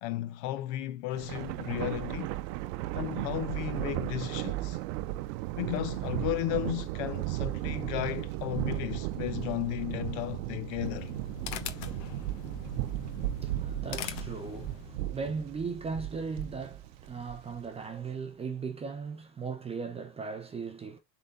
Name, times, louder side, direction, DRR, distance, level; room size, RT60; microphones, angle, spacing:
voice 1, 0.0-2.4 2.9-4.8 5.6-11.1, left 15 dB, 45° left, 0.5 m, -34 dB
Thunder, 1.1-17.7, right 16 dB, 80° right, 0.7 m, -35 dB
sound 1, 10.6-15.1, left 11 dB, 65° left, 1.2 m, -42 dB
voice 2, 12.5-21.0, right 5 dB, 15° right, 0.5 m, -38 dB
7.5 x 3.9 x 3.7 m
supercardioid pair, 155°, 49 cm